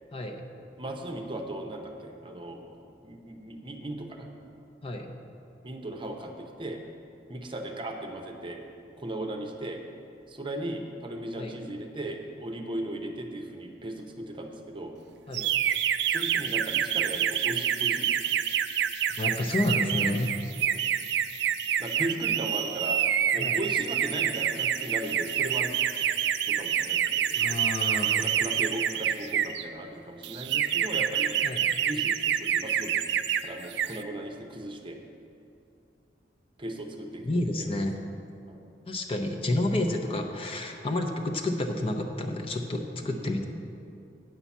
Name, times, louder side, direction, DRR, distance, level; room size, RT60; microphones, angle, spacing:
voice 1, 0.8-4.3 5.6-6.8 7.3-8.6 9.0-9.8 10.3-14.9 16.1-18.3 20.7-20.9 21.8-23.0 23.3-25.8 26.5-27.6 28.2-31.3 31.8-33.0 33.4-35.0 36.6-37.3 37.6-37.7 38.5-38.6 43.0-43.4, right 1 dB, 30° right, 3 dB, 0.7 m, -37 dB
sound 1, 15.3-29.6 30.2-33.4 33.7-34.0, right 9 dB, 65° right, 0.3 m, -27 dB
voice 2, 19.2-20.3 23.4-23.6 27.4-28.1 31.4-31.6 37.2-37.9 38.9-43.4, left 1 dB, 30° left, 3 dB, 0.7 m, -30 dB
9.1 x 5.7 x 7.2 m, 2.6 s
head